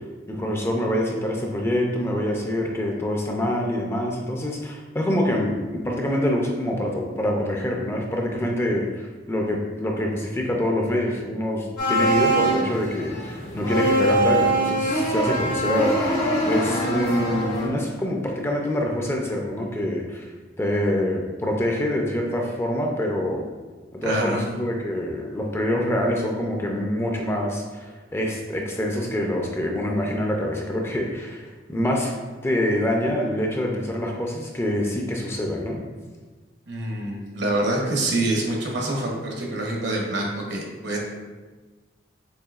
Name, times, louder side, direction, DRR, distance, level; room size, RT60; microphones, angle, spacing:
voice 1, 0.3-20.3 20.6-23.5 24.0-32.1 32.4-35.8, left 1 dB, 15° left, 0 dB, 0.4 m, -25 dB
sound 1, 11.8-17.7, right 1 dB, 80° left, 1.5 m, -23 dB
voice 2, 24.0-24.4 36.7-41.0, right 1 dB, 70° right, -1 dB, 0.9 m, -26 dB
6.7 x 2.7 x 2.4 m, 1.3 s
head